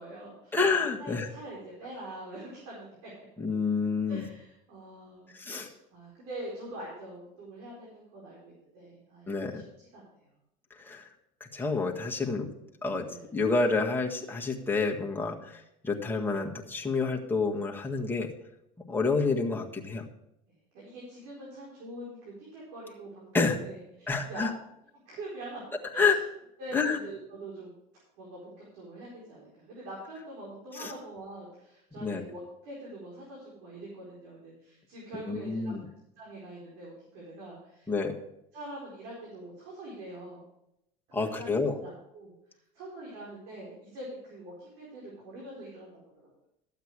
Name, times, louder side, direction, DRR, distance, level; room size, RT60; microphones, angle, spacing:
voice 1, 0.0-0.6 1.0-3.1 4.1-9.6 9.9-10.0 13.0-13.2 20.5-24.5 25.1-25.6 25.9-26.1 26.6-27.7 28.2-35.7 36.2-37.9 38.5-40.5 41.2-42.3 42.7-46.3, right 1 dB, 75° right, -5 dB, 4.6 m, -44 dB
voice 2, 0.5-1.3 3.4-4.2 5.3-5.7 9.3-9.6 10.8-11.1 11.4-12.5 12.8-18.3 18.9-20.0 23.3-23.6 24.1-24.5 25.9-26.2 26.7-27.0 30.8-30.9 32.0-32.2 35.3-35.9 37.9-38.1 41.1-41.8, left 4 dB, 10° left, -1 dB, 1.7 m, -28 dB
12.5 x 8.3 x 4.8 m, 0.81 s
supercardioid pair, 95°, 19 cm